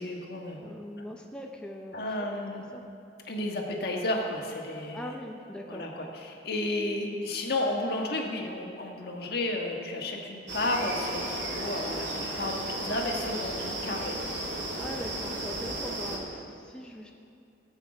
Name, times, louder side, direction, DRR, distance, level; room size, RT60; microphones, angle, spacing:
voice 1, 0.0-0.6 1.0-1.1 1.9-2.6 3.3-5.1 5.7-14.1, left 2 dB, 60° left, 0 dB, 1.6 m, -32 dB
voice 2, 0.6-2.2 2.7-2.8 4.9-6.1 14.8-17.1, equal, 5° left, 0 dB, 0.6 m, -41 dB
sound 1, 10.5-16.2, right 1 dB, 75° right, 2.8 m, -34 dB
18.0 x 8.1 x 5.0 m, 2.6 s
head